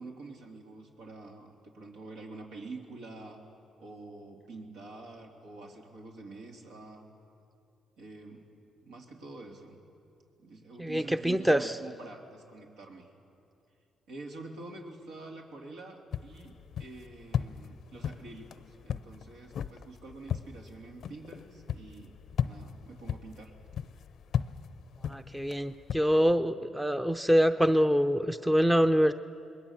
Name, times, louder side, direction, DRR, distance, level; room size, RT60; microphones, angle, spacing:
voice 1, 0.0-3.4 3.8-7.1 8.0-8.5 8.8-9.8 10.4-13.1 14.1-22.2 22.4-23.5, right 3 dB, 85° right, 0 dB, 3.3 m, -47 dB
voice 2, 10.8-11.7 25.1-29.1, equal, 5° right, 10 dB, 0.6 m, -25 dB
sound 1, 16.1-26.1, left 8 dB, 65° left, 0.6 m, -37 dB
27.5 x 21.0 x 7.3 m, 2.6 s
cardioid pair, 90°, 0 cm